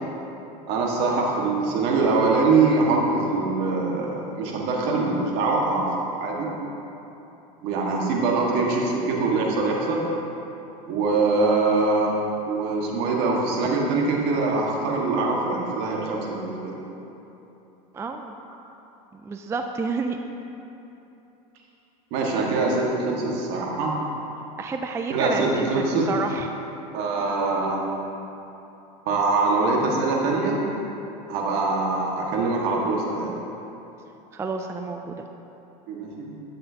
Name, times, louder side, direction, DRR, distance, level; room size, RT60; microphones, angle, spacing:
voice 1, 0.7-5.9 6.2-6.5 7.6-10.0 10.9-12.2 12.4-16.7 22.1-23.9 25.1-26.1 26.9-27.8 29.1-30.6 31.3-33.4 35.9-36.3, right 3 dB, 60° right, -2 dB, 1.7 m, -23 dB
voice 2, 17.9-18.4 19.1-20.2 24.6-26.5 34.3-35.1, right 4 dB, 15° right, 5 dB, 0.3 m, -30 dB
11.5 x 7.6 x 2.8 m, 3.0 s
supercardioid pair, 110°, 19 cm